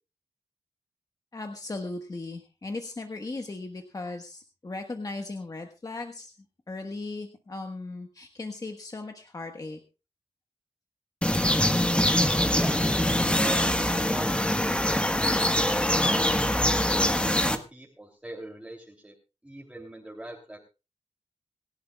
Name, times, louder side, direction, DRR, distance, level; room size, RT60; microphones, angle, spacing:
voice 1, 1.3-6.3 6.7-9.8, left 2 dB, 35° left, 4 dB, 1.5 m, -37 dB
sound 1, 11.2-17.6, left 1 dB, 10° left, 1.5 m, -24 dB
voice 2, 12.5-12.9 13.4-13.7 14.0-14.3 15.9-19.1 19.4-20.6, right 1 dB, 10° right, -1 dB, 2.9 m, -40 dB
27.0 x 11.5 x 2.4 m, 0.31 s
wide cardioid pair, 120°, 11 cm